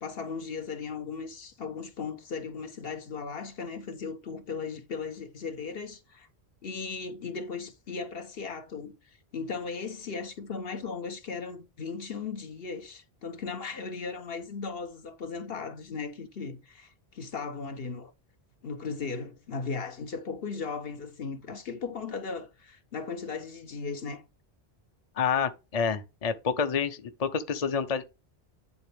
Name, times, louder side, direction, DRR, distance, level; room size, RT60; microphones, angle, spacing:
voice 1, 0.0-6.3 6.6-8.9 9.3-18.1 18.6-24.2, left 5 dB, 65° left, 1.2 m, -37 dB
voice 2, 25.2-28.0, left 6 dB, 40° left, 0.8 m, -28 dB
10.5 x 3.9 x 3.4 m
omnidirectional pair, 1.1 m